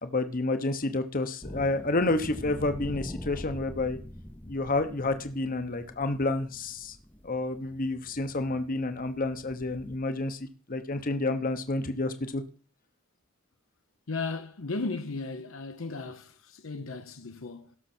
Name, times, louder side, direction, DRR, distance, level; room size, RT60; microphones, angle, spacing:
voice 1, 0.0-4.0 4.5-6.9 7.2-12.4, left 2 dB, 40° left, 1.0 m, -29 dB
sound 1, 1.4-10.0, equal, 10° left, 0.7 m, -43 dB
voice 2, 14.1-17.8, left 3 dB, 65° left, 0.8 m, -35 dB
17.0 x 6.8 x 4.4 m
head